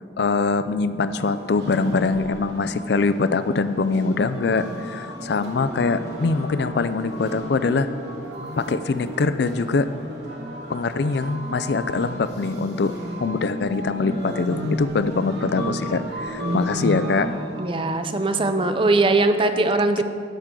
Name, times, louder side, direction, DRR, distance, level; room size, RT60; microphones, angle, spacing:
voice 1, 0.2-7.9 8.6-9.9 10.7-12.9 13.2-17.3 20.0-20.1, left 4 dB, 55° left, 12 dB, 0.4 m, -23 dB
sound 1, 1.1-18.9, equal, 60° right, 2.1 m, -33 dB
voice 2, 17.6-20.0, right 2 dB, 25° right, 8 dB, 0.5 m, -20 dB
13.5 x 8.0 x 3.8 m, 2.3 s
head